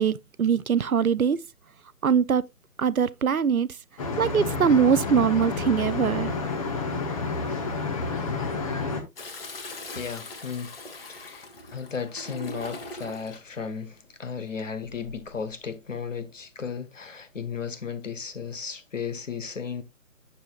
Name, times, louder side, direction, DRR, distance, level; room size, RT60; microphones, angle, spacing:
voice 1, 0.0-1.4 2.0-2.5 2.8-3.7 4.2-6.3, right 7 dB, 70° right, 0.7 m, -22 dB
sound 1, 4.0-9.0, left 4 dB, 25° left, 1.3 m, -29 dB
Toilet flush, 9.2-13.5 14.8-15.3, left 2 dB, 40° left, 1.8 m, -41 dB
voice 2, 9.9-10.7 11.7-19.8, left 6 dB, 60° left, 1.4 m, -34 dB
9.1 x 6.9 x 2.4 m
figure-of-eight pair, 150°, 44 cm